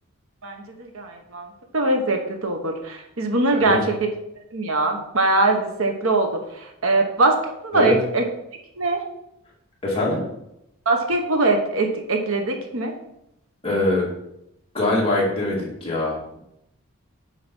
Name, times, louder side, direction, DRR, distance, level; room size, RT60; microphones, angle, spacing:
voice 1, 0.4-1.5 1.7-4.0 4.5-6.4 6.8-8.3 8.8-9.0 10.9-12.9, right 2 dB, 65° right, 4 dB, 1.1 m, -22 dB
voice 2, 9.8-10.2 13.6-14.1 14.7-16.4, left 2 dB, 25° left, -5 dB, 2.3 m, -23 dB
7.5 x 4.7 x 5.4 m, 0.82 s
head